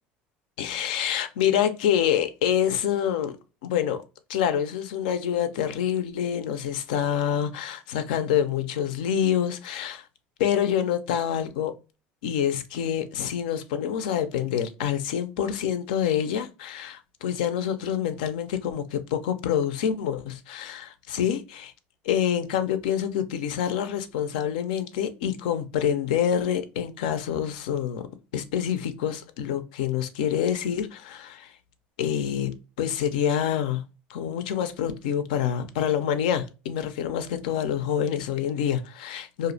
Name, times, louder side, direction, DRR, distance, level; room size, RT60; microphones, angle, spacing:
voice 1, 0.6-3.4 3.6-4.0 4.3-10.0 10.4-11.7 12.2-21.7 22.0-28.1 28.3-31.5 32.0-33.8 34.1-39.5, left 9 dB, 90° left, 0.4 m, -27 dB
2.4 x 2.1 x 2.5 m
supercardioid pair, 100°, 5 cm